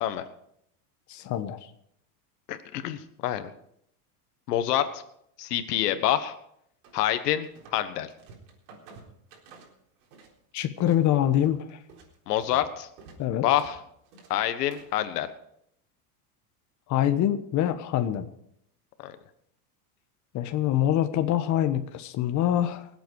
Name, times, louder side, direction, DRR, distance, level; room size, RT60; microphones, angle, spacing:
voice 1, 1.1-1.6 10.5-11.6 13.2-13.4 16.9-18.3 20.3-22.9, left 11 dB, 40° left, 8 dB, 1.2 m, -25 dB
voice 2, 2.5-3.5 4.5-5.0 5.4-6.3 6.9-8.1 12.3-12.9 13.4-13.8 14.3-15.3 19.0-19.2, left 12 dB, 90° left, 11 dB, 1.4 m, -27 dB
sound 1, 6.8-7.8 8.1-10.3 10.6-15.0, right 3 dB, 75° right, 4.0 m, -51 dB
24.5 x 8.2 x 4.7 m, 0.74 s
supercardioid pair, 130°, 46 cm